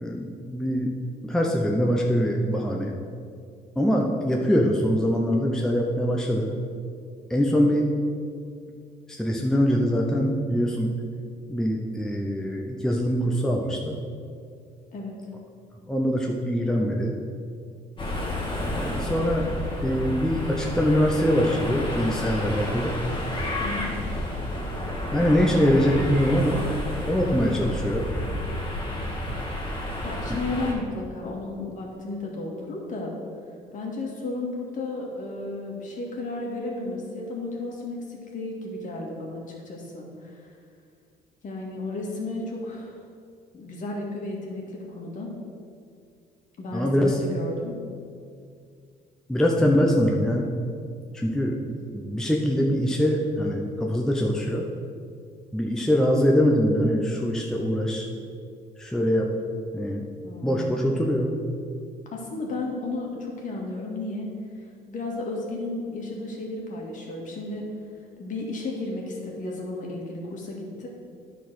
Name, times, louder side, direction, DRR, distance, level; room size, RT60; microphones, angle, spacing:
voice 1, 0.0-0.9 1.2-2.9 3.8-6.5 7.3-7.9 9.1-10.9 11.5-13.9 15.9-17.2 18.7-19.5 19.8-22.9 25.1-26.7 27.1-28.1 30.3-30.4 46.7-47.2 49.3-50.5 51.1-54.6 55.5-58.1 58.8-59.3 59.7-60.0 60.4-61.3, equal, 5° left, -1 dB, 0.8 m, -23 dB
sound 1, 18.0-30.7, left 1 dB, 30° left, 2.2 m, -30 dB
voice 2, 23.6-24.0 30.0-33.1 33.7-40.4 41.4-43.0 43.5-45.4 46.6-47.8 60.2-60.9 62.1-64.3 64.9-67.7 68.2-70.9, left 2 dB, 50° left, -1 dB, 2.0 m, -33 dB
9.8 x 4.2 x 6.3 m, 2.3 s
cardioid pair, 110°, 17 cm